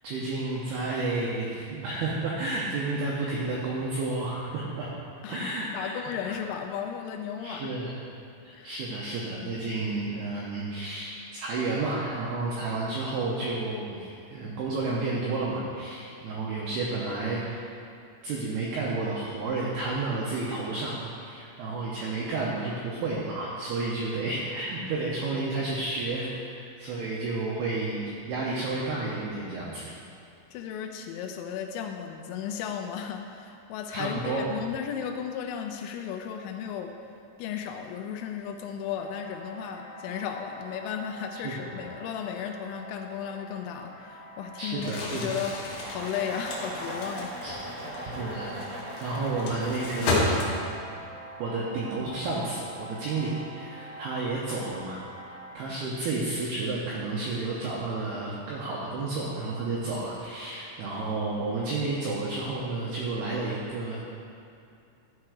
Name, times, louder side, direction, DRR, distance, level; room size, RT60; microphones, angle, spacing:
voice 1, 0.0-4.9 5.3-5.9 6.2-6.3 7.4-8.0 8.4-17.7 18.2-29.8 33.9-34.5 41.4-41.7 44.6-45.3 47.4-48.6 49.0-50.4 51.4-55.0 55.5-64.0, right 3 dB, 85° right, -5 dB, 2.3 m, -31 dB
voice 2, 5.2-7.7 8.5-8.7 30.5-37.0 37.4-47.6, left 8 dB, 85° left, 4 dB, 2.7 m, -35 dB
sound 1, 38.9-55.8, right 1 dB, 55° left, 2.7 m, -45 dB
Crumpling crinkling, 44.7-50.9, left 2 dB, 70° left, 2.8 m, -32 dB
sound 2, 45.5-50.4, right 1 dB, 55° right, 0.9 m, -39 dB
12.5 x 4.6 x 4.9 m, 2.6 s
omnidirectional pair, 5.8 m